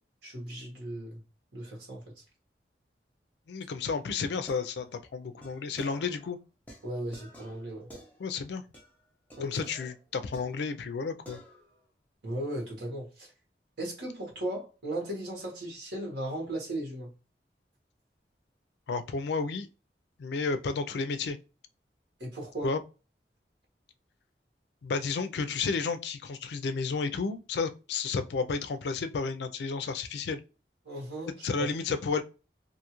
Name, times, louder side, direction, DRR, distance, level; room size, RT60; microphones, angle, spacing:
voice 1, 0.2-1.2 1.5-2.0 6.8-7.9 9.3-9.6 12.2-13.3 13.8-17.1 22.2-22.7 30.8-31.7, right 1 dB, 80° right, 1.3 m, -36 dB
voice 2, 3.5-6.4 8.2-8.6 9.4-11.4 18.9-19.7 20.2-21.4 22.6-22.8 24.8-30.4 31.4-32.2, left 4 dB, 80° left, 0.4 m, -32 dB
sound 1, 4.3-6.3 6.7-8.5 8.7-9.0 9.3-11.0 11.3-11.8, equal, 10° left, 0.6 m, -51 dB
2.6 x 2.3 x 2.9 m
head